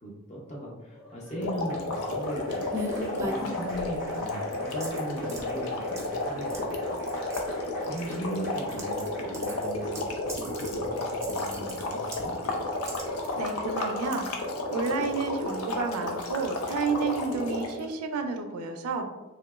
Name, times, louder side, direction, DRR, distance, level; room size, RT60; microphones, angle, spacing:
voice 1, 0.0-2.7 3.2-7.0 7.5-12.4, right 1 dB, 30° left, -3 dB, 0.7 m, -39 dB
Applause, 0.9-10.0, equal, 60° left, 1.1 m, -48 dB
sound 1, 1.4-17.8, left 2 dB, 85° left, 0.5 m, -32 dB
sound 2, 2.7-4.0 4.8-5.4 6.0-6.2 6.5-6.6 6.9-7.4 8.0-9.1 9.3-10.8 11.1-12.3 12.8-13.0, equal, 15° right, 0.4 m, -37 dB
voice 2, 13.4-14.3 14.7-19.1, right 4 dB, 85° right, 6 dB, 0.4 m, -30 dB
3.2 x 2.8 x 2.3 m, 1.1 s
head